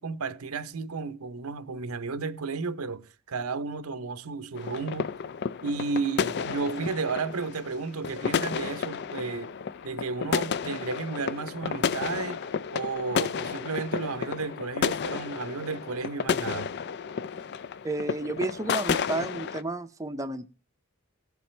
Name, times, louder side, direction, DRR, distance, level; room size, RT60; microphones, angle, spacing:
voice 1, 0.0-5.1 5.6-9.5 9.8-12.4 12.7-16.7, right 4 dB, 85° right, 0.8 m, -33 dB
sound 1, 4.6-19.6, left 6 dB, 50° left, 0.4 m, -32 dB
voice 2, 17.8-20.5, right 2 dB, 15° right, 0.5 m, -31 dB
17.5 x 7.2 x 3.2 m
head